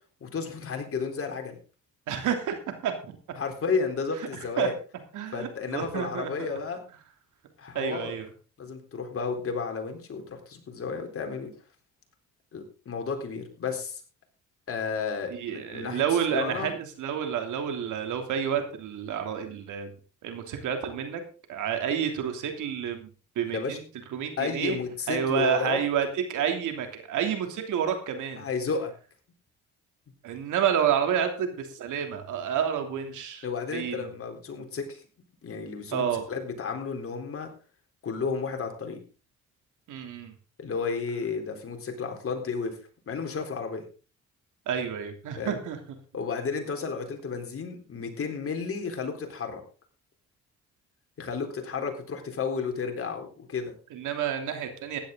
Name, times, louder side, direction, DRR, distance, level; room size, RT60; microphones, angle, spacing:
voice 1, 0.2-1.6 3.4-4.7 5.3-6.8 7.6-8.1 8.6-11.5 12.5-14.0 14.7-16.0 16.3-16.7 23.4-23.8 24.4-25.8 28.4-28.9 33.4-35.0 35.4-37.5 38.0-39.0 40.6-42.8 43.1-43.8 45.4-45.6 46.1-49.6 51.2-53.8, left 5 dB, 50° left, 4 dB, 4.0 m, -32 dB
voice 2, 2.1-3.1 4.6-4.7 5.1-6.5 7.7-8.3 15.3-19.9 20.2-21.2 21.5-23.1 23.3-23.8 24.1-24.8 25.1-28.4 30.2-33.4 33.7-34.1 35.9-36.2 39.9-40.3 44.7-45.8 53.9-55.0, right 8 dB, 85° right, 6 dB, 3.1 m, -29 dB
15.5 x 10.5 x 3.9 m, 0.37 s
cardioid pair, 90°, 30 cm